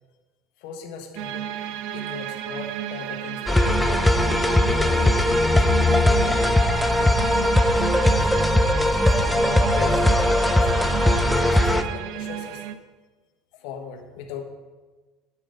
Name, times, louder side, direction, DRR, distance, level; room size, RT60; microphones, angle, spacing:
voice 1, 0.6-1.5 1.9-4.4 4.8-6.6 6.9-7.3 7.8-8.3 8.8-10.1 10.3-10.7 11.3-12.6 13.5-14.4, left 6 dB, 70° left, 4 dB, 1.4 m, -38 dB
sound 1, 1.2-12.8, right 11 dB, 65° right, 0.6 m, -32 dB
sound 2, 3.5-11.8, left 1 dB, 5° left, 0.5 m, -19 dB
9.9 x 7.4 x 4.0 m, 1.3 s
supercardioid pair, 135°, 0 cm